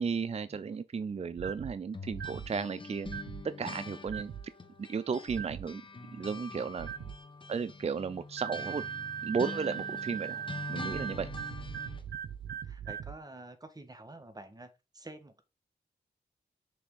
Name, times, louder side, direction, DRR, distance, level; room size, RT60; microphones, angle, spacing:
voice 1, 0.0-3.1 3.6-4.3 4.8-5.8 6.1-6.9 7.5-8.8 9.2-10.3 10.7-11.3, right 5 dB, 40° right, 0.5 m, -34 dB
sound 1, 1.4-1.7 2.1-2.5 3.0-3.4 4.1-4.4 5.3-5.6 6.8-7.1 8.4-13.1, right 9 dB, 85° right, 0.6 m, -39 dB
sound 2, 1.9-5.4 5.7-12.1, left 3 dB, 30° left, 1.2 m, -44 dB
voice 2, 12.5-15.4, right 2 dB, 25° right, 1.3 m, -50 dB
6.1 x 3.3 x 4.7 m
cardioid pair, 60°, 17 cm